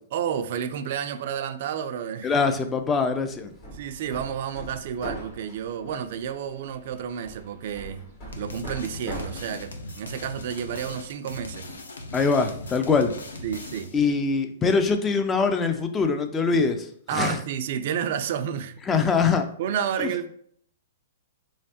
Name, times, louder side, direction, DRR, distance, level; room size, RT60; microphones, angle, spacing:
voice 1, 0.1-2.3 3.7-8.1 8.4-11.7 13.4-13.9 17.1-18.8 19.2-19.3 19.6-20.3, right 8 dB, 55° right, 0.4 m, -30 dB
voice 2, 2.2-3.5 12.1-13.2 13.9-17.4 18.9-19.5 20.0-20.1, left 4 dB, 15° left, 0.4 m, -23 dB
Hammer, 3.3-11.1, equal, 45° left, 1.2 m, -42 dB
sound 1, 8.3-14.1, left 2 dB, 85° left, 0.6 m, -39 dB
3.5 x 3.2 x 2.8 m
hypercardioid pair, 120°, 0 cm